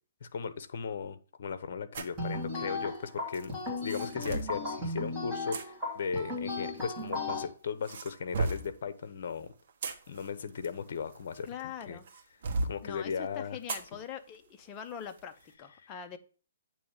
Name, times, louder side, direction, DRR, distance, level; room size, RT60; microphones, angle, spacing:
voice 1, 0.2-3.5 3.8-9.5 10.1-12.0 12.6-13.6 15.8-15.9, left 6 dB, 55° left, 0.8 m, -37 dB
sound 1, 1.9-2.2 3.3-4.6 5.5-5.6 6.8-7.4 7.8-8.8 9.5-11.6 12.1-12.8 13.7-13.9 14.3-14.4 15.0-15.2, right 3 dB, 50° right, 1.1 m, -35 dB
sound 2, 2.2-7.5, left 2 dB, 5° right, 3.1 m, -36 dB
voice 2, 11.4-12.1 12.8-16.2, left 8 dB, 20° left, 0.6 m, -43 dB
8.5 x 3.1 x 6.4 m
hypercardioid pair, 155°, 0 cm